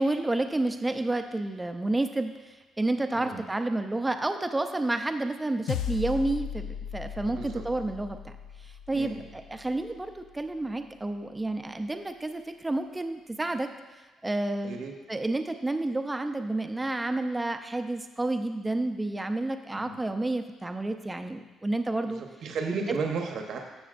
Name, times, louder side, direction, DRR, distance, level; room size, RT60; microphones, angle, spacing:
voice 1, 0.0-2.3 2.8-8.4 8.6-13.7 14.2-14.8 15.1-22.2, right 2 dB, 10° right, 7 dB, 0.5 m, -30 dB
sound 1, 5.7-10.3, left 8 dB, 90° left, 0.4 m, -37 dB
voice 2, 7.3-7.6 8.9-9.2 14.6-14.9 19.7-20.1 22.0-23.6, right 4 dB, 65° right, 3 dB, 1.0 m, -34 dB
13.5 x 7.0 x 2.5 m, 1.2 s
cardioid pair, 125°, 0 cm